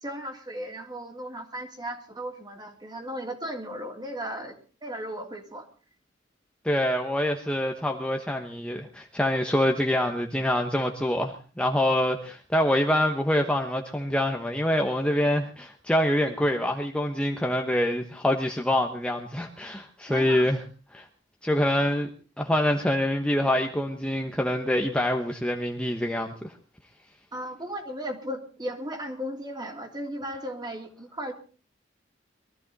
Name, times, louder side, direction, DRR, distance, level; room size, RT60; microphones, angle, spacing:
voice 1, 0.0-4.6 4.8-5.7 20.1-20.5 27.3-31.3, equal, 25° right, 3 dB, 3.1 m, -36 dB
voice 2, 6.6-20.6 20.9-21.0 21.4-22.1 22.4-26.5, left 1 dB, 5° left, 2 dB, 1.1 m, -25 dB
22.5 x 14.0 x 4.1 m, 0.37 s
head